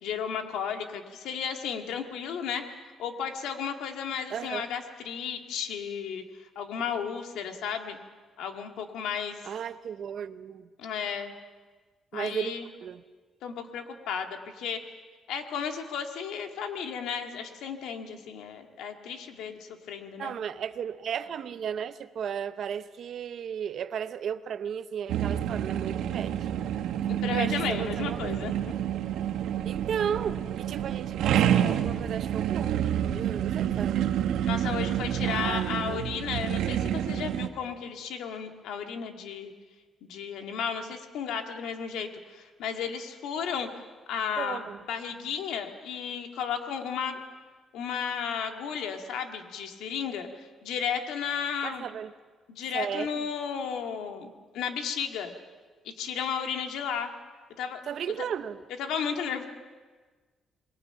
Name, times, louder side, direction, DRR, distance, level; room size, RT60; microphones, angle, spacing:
voice 1, 0.0-2.7 3.0-6.2 6.6-8.0 8.4-9.4 10.8-11.3 12.1-12.7 13.4-14.8 15.3-20.3 27.1-28.5 34.4-39.5 40.0-43.7 44.1-44.6 44.9-47.2 47.7-51.9 52.5-55.3 55.9-57.1 57.6-57.8 58.8-59.5, left 7 dB, 85° left, 5 dB, 1.9 m, -34 dB
voice 2, 4.3-4.7 9.4-10.7 12.1-12.5 12.8-13.0 20.2-26.4 27.3-28.3 29.6-34.1 35.2-36.0 36.4-36.5 44.4-44.8 51.6-52.1 52.7-53.3 57.9-58.6, right 8 dB, 50° right, 12 dB, 0.8 m, -35 dB
sound 1, 25.1-37.5, right 10 dB, 80° right, 1.2 m, -28 dB
27.5 x 21.5 x 5.8 m, 1.4 s
cardioid pair, 165°, 0 cm